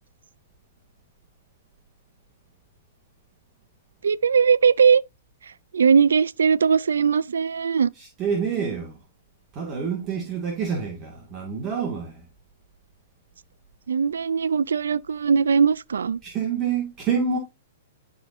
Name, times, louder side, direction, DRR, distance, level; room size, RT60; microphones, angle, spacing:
voice 1, 4.0-5.0 5.4-7.9 13.9-16.2, right 6 dB, 90° right, 0.3 m, -20 dB
voice 2, 8.0-9.0 9.5-12.2 16.2-17.4, right 6 dB, 30° right, 2.1 m, -27 dB
12.0 x 4.2 x 2.6 m
hypercardioid pair, 135°, 0 cm